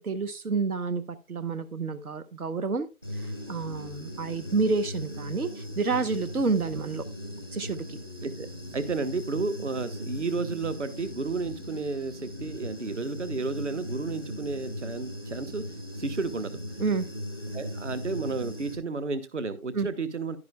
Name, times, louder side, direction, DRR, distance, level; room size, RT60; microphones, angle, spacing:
voice 1, 0.0-2.9 3.1-7.0 7.5-8.0 16.8-17.1 19.7-19.9, right 4 dB, 75° right, 11 dB, 1.0 m, -29 dB
Human voice / Buzz, 3.0-18.7, equal, 15° right, 1.0 m, -38 dB
voice 2, 8.7-15.6 16.0-16.6 17.5-20.4, right 4 dB, 55° right, 13 dB, 1.1 m, -32 dB
11.0 x 10.0 x 2.2 m, 0.27 s
figure-of-eight pair, 170°, 44 cm